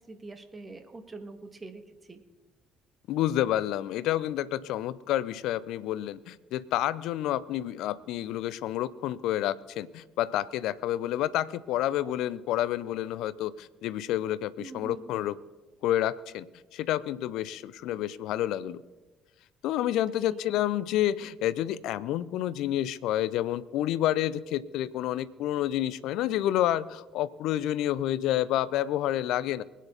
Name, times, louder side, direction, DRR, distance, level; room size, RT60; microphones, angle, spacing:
voice 1, 0.0-2.2 14.6-15.1 20.1-20.4, right 3 dB, 30° right, 7 dB, 2.0 m, -44 dB
voice 2, 3.1-15.3 15.8-16.5 16.7-18.8 19.6-29.6, left 12 dB, 70° left, 18 dB, 0.5 m, -29 dB
23.5 x 9.4 x 4.1 m, 1.2 s
hypercardioid pair, 50°, 0 cm